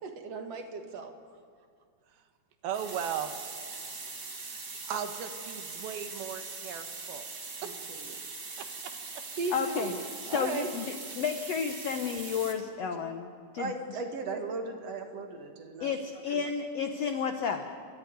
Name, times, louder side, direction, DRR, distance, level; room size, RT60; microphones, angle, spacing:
voice 1, 0.0-1.1 7.6-8.1 9.4-10.0 10.3-10.7 13.6-15.9 16.3-16.4, right 3 dB, 50° right, 5 dB, 2.2 m, -36 dB
voice 2, 2.6-3.3 4.9-7.3 7.6-7.7 8.6-8.9, right 8 dB, 75° right, 8 dB, 3.1 m, -37 dB
sound 1, 2.7-12.5, right 4 dB, 35° right, 2.2 m, -41 dB
voice 3, 9.5-9.9 10.2-13.3 13.5-14.0 15.8-17.7, left 6 dB, 80° left, 6 dB, 1.4 m, -32 dB
29.5 x 14.0 x 9.4 m, 2.2 s
omnidirectional pair, 4.4 m